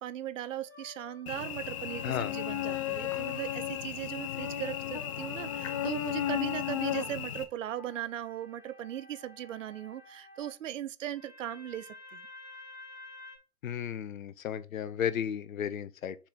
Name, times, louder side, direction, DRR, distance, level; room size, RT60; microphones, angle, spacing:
voice 1, 0.0-12.2, right 11 dB, 55° right, 0.7 m, -38 dB
sound 1, 0.6-3.9 4.2-10.6 11.1-13.4, left 3 dB, 75° left, 2.7 m, -52 dB
Cricket / Buzz, 1.3-7.4, left 11 dB, 20° left, 0.5 m, -34 dB
voice 2, 2.0-2.3 13.6-16.2, left 8 dB, 60° left, 0.8 m, -34 dB
7.0 x 3.9 x 4.2 m
figure-of-eight pair, 125°, 46 cm